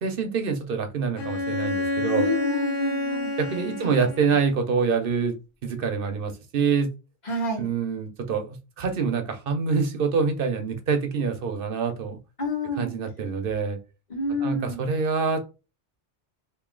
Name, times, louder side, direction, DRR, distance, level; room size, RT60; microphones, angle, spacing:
voice 1, 0.0-2.2 3.4-5.3 5.6-6.9 7.6-12.2 12.8-13.8 14.4-15.4, right 5 dB, 55° right, 7 dB, 0.8 m, -26 dB
Bowed string instrument, 1.2-4.7, left 2 dB, 55° left, 1.0 m, -29 dB
voice 2, 2.1-3.3 3.8-4.0 7.2-7.7 12.4-12.9 14.1-14.8, left 1 dB, 40° left, -1 dB, 1.4 m, -29 dB
3.0 x 2.7 x 3.7 m, 0.30 s
omnidirectional pair, 1.2 m